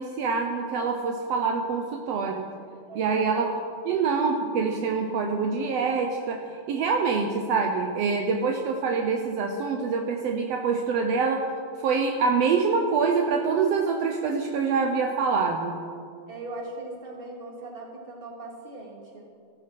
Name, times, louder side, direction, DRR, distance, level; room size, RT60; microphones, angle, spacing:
voice 1, 0.0-2.5 3.0-3.5 3.8-6.4 6.7-11.5 11.8-15.8, right 5 dB, 80° right, 3 dB, 1.4 m, -25 dB
voice 2, 2.9-3.4 16.3-19.2, right 2 dB, 15° right, -1 dB, 2.3 m, -39 dB
14.0 x 14.0 x 6.1 m, 2.2 s
omnidirectional pair, 4.0 m